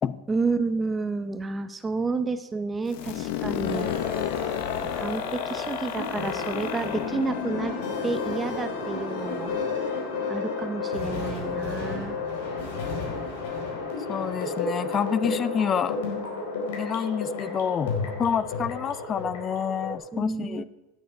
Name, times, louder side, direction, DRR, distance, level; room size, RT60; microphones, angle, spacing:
voice 1, 0.3-4.0 4.9-7.7 8.0-9.5 10.3-12.2 20.1-20.6, right 4 dB, 10° right, 10 dB, 0.7 m, -30 dB
sound 1, 2.9-8.6, left 11 dB, 60° left, 1.0 m, -32 dB
sound 2, 3.6-19.9, left 4 dB, 75° left, 4.3 m, -32 dB
voice 2, 14.1-16.0 16.8-20.6, left 7 dB, 20° left, 16 dB, 0.4 m, -28 dB
17.5 x 9.6 x 4.7 m, 1.1 s
supercardioid pair, 170°, 0 cm